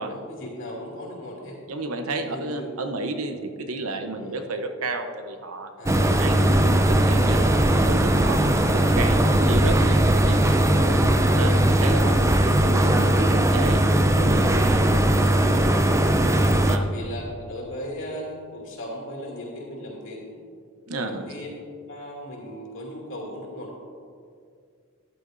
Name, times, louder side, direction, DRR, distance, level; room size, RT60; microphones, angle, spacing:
voice 1, 0.1-1.6 2.3-2.7 4.2-4.3 5.8-6.2 10.7-11.1 16.8-20.4 21.0-21.5 21.9-23.8, equal, 65° left, -2 dB, 2.8 m, -37 dB
voice 2, 1.7-5.7 6.2-8.4 8.7-10.5 11.3-13.8 14.2-15.1 16.7-16.8 20.9-21.3, right 2 dB, 80° right, 6 dB, 0.9 m, -32 dB
sound 1, 5.9-16.8, right 1 dB, 15° right, 0.5 m, -19 dB
13.5 x 11.0 x 2.7 m, 2.2 s
head